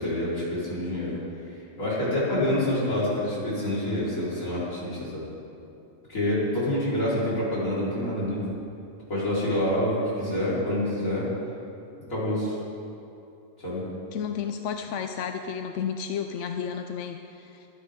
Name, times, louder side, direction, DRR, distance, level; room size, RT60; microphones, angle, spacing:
voice 1, 0.0-5.2 6.1-8.5 9.1-11.3 12.1-12.6 13.6-13.8, left 1 dB, 90° left, -9 dB, 4.8 m, -27 dB
voice 2, 14.1-17.7, left 7 dB, 70° left, 6 dB, 0.9 m, -32 dB
24.0 x 10.5 x 3.7 m, 2.7 s
omnidirectional pair, 1.4 m